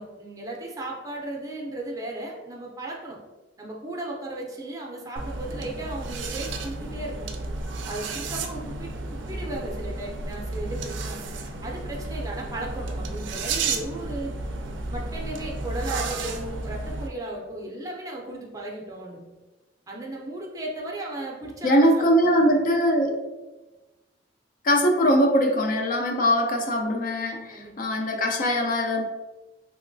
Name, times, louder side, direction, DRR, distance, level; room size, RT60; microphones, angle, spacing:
voice 1, 0.0-3.2 3.6-7.3 7.8-11.3 11.6-14.3 14.9-19.2 19.9-22.6 27.5-28.1, right 1 dB, 20° right, -1 dB, 0.5 m, -36 dB
sound 1, 5.2-17.1, right 3 dB, 85° right, 0.4 m, -32 dB
voice 2, 21.6-23.1 24.6-29.0, equal, 50° left, 3 dB, 0.4 m, -21 dB
3.1 x 2.9 x 2.6 m, 1.1 s
head